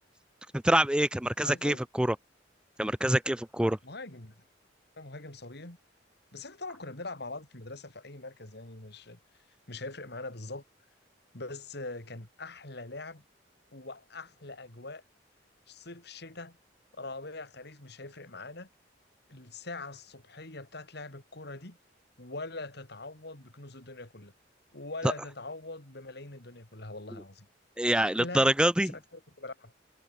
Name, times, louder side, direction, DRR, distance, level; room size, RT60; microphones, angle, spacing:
voice 1, 0.6-2.1 2.8-3.8 27.8-28.9, right 1 dB, 5° right, 0.6 m, -25 dB
voice 2, 1.4-1.8 3.8-4.4 5.0-5.8 6.3-9.2 9.7-10.6 11.3-13.2 13.7-15.0 15.7-16.6 16.9-18.7 19.3-21.8 22.2-24.3 24.7-27.5 28.0-28.5 28.9-29.7, left 2 dB, 60° left, 3.8 m, -42 dB
head